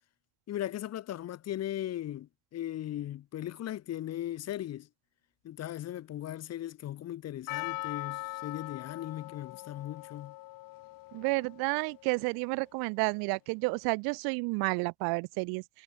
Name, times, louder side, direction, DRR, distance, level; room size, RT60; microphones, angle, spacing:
voice 1, 0.5-4.9 5.4-10.4, left 12 dB, 45° left, 1.9 m, -38 dB
Percussion, 7.5-12.4, left 19 dB, 65° left, 6.4 m, -42 dB
voice 2, 11.1-15.8, right 31 dB, 80° right, 1.0 m, -31 dB
cardioid pair, 135°, 36 cm